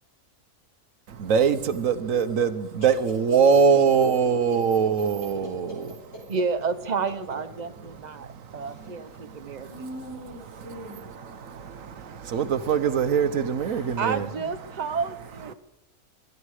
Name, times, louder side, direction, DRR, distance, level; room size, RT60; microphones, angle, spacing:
voice 1, 1.2-5.9 8.2-8.6 9.2-9.8 10.6-14.3, right 6 dB, 65° right, 1.2 m, -23 dB
voice 2, 4.5-5.8 6.1-6.2 8.8-9.0 9.6-11.1 13.6-14.4, equal, 45° left, 4.2 m, -42 dB
voice 3, 6.3-9.9 14.0-15.5, right 5 dB, 35° right, 0.7 m, -30 dB
24.5 x 11.0 x 4.9 m
omnidirectional pair, 1.6 m